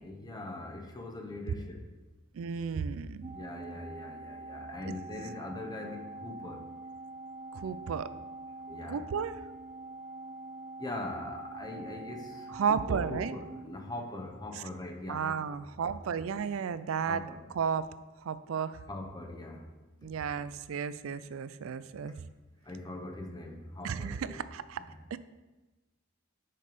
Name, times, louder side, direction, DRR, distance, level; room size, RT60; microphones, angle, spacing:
voice 1, 0.0-1.8 3.3-6.6 8.7-9.0 10.8-16.0 17.1-17.4 18.9-19.6 20.0-20.1 22.7-24.4 24.8-25.0, left 2 dB, 20° left, 3 dB, 0.8 m, -42 dB
voice 2, 2.3-3.2 7.5-8.1 8.9-9.4 12.5-13.3 14.5-14.6 15.1-17.2 17.5-17.9 18.2-18.8 20.0-22.1 23.8-24.8 25.1-25.2, right 6 dB, 75° right, 14 dB, 0.4 m, -33 dB
Organ, 3.2-14.5, right 2 dB, 35° right, 0.8 m, -45 dB
6.6 x 5.4 x 5.1 m, 1.2 s
head